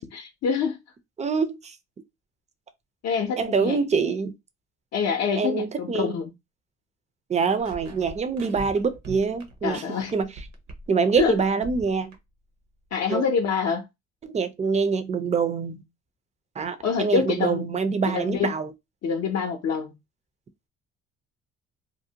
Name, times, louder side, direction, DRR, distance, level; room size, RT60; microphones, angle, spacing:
voice 1, 0.1-0.8 3.0-3.8 4.9-6.3 9.6-10.1 11.2-11.4 12.9-13.9 16.8-17.7 18.1-18.5 19.0-19.9, left 6 dB, 60° left, 0.6 m, -26 dB
voice 2, 1.2-1.7 3.4-4.3 5.4-6.1 7.3-9.8 10.1-10.3 10.9-12.1 13.1-13.2 14.2-15.8 16.6-18.7, right 5 dB, 25° right, 0.4 m, -25 dB
sound 1, 7.6-10.9 11.1-12.2, right 4 dB, 65° right, 0.7 m, -41 dB
2.6 x 2.0 x 2.7 m
cardioid pair, 90°, 30 cm